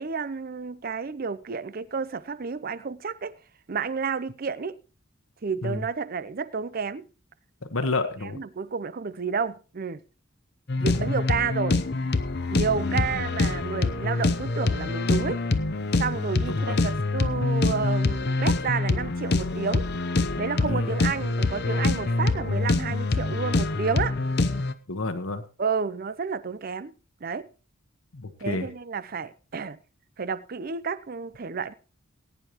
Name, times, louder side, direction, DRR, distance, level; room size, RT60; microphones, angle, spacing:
voice 1, 0.0-3.3 3.7-4.8 5.4-7.1 8.3-10.0 10.8-11.8 12.5-15.4 16.0-19.9 20.4-24.2 25.6-26.9 27.2-27.5 28.4-29.8 30.2-31.7, right 5 dB, 45° right, 0.5 m, -30 dB
voice 2, 7.7-8.4 10.8-11.2 12.8-13.1 16.5-16.8 20.6-20.9 24.9-25.4 28.1-28.7, left 2 dB, 75° left, 1.3 m, -30 dB
sound 1, 10.7-24.7, left 3 dB, 50° left, 0.7 m, -25 dB
19.0 x 9.9 x 3.0 m
head